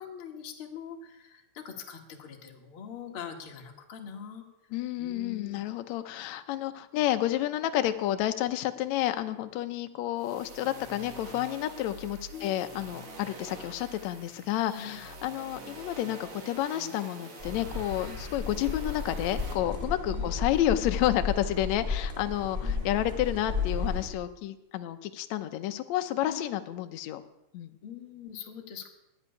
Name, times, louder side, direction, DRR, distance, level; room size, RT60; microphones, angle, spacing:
voice 1, 0.0-4.4 5.0-5.6 12.3-12.6 14.7-15.0 18.0-18.2 20.1-20.3 22.6-22.8 26.3-26.4 27.8-28.9, left 8 dB, 45° left, 1 dB, 2.2 m, -43 dB
voice 2, 4.7-27.2 27.5-27.7, left 13 dB, 70° left, 8 dB, 2.0 m, -30 dB
sound 1, 10.2-19.5, right 2 dB, 55° right, 3.2 m, -45 dB
sound 2, 17.4-24.1, left 4 dB, 15° right, 2.0 m, -33 dB
12.5 x 8.0 x 9.8 m, 0.89 s
omnidirectional pair, 3.6 m